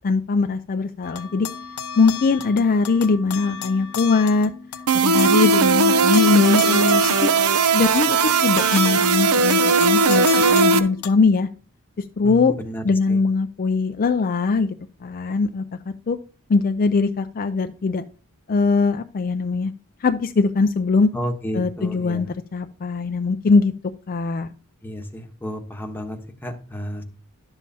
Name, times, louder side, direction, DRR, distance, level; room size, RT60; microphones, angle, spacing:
voice 1, 0.0-1.5 2.0-4.5 4.9-7.3 7.7-8.2 8.4-11.5 12.2-12.5 12.8-14.8 15.0-15.6 16.1-16.2 16.5-18.0 18.5-19.7 20.0-21.1 21.5-22.3 22.5-23.7 24.1-24.5, left 4 dB, 40° left, 8 dB, 0.4 m, -21 dB
sound 1, 1.0-11.1, left 8 dB, 75° left, 0.9 m, -34 dB
sound 2, 4.9-10.8, right 4 dB, 80° right, 0.7 m, -18 dB
voice 2, 12.2-12.8 13.1-13.2 21.1-22.3 24.8-27.0, equal, 10° left, 4 dB, 1.0 m, -31 dB
11.5 x 7.3 x 2.8 m, 0.41 s
head